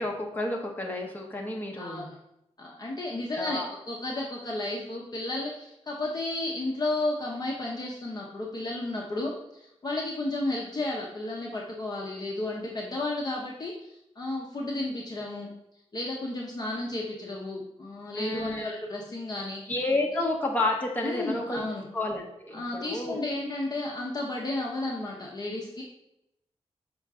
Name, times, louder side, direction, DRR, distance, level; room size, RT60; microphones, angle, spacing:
voice 1, 0.0-2.1 3.3-3.7 18.2-18.8 19.7-21.6 21.9-23.2, left 2 dB, 15° left, 0 dB, 1.1 m, -30 dB
voice 2, 1.8-2.2 2.6-15.5 15.9-19.6 21.0-21.9 22.5-25.8, left 2 dB, 35° left, -2 dB, 0.8 m, -33 dB
5.7 x 5.3 x 3.6 m, 0.83 s
wide cardioid pair, 155°, 11 cm